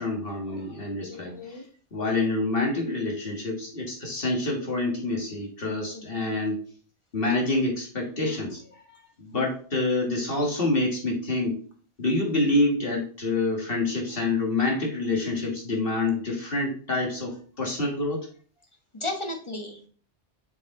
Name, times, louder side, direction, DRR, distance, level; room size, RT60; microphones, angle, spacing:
voice 1, 0.0-1.6 1.9-6.6 7.1-8.8 9.2-11.6 12.0-18.3, left 2 dB, 55° left, 0 dB, 2.0 m, -27 dB
voice 2, 1.1-1.7 5.9-6.4 18.9-19.9, left 2 dB, 25° left, 3 dB, 1.3 m, -35 dB
7.1 x 4.7 x 3.9 m, 0.43 s
omnidirectional pair, 1.2 m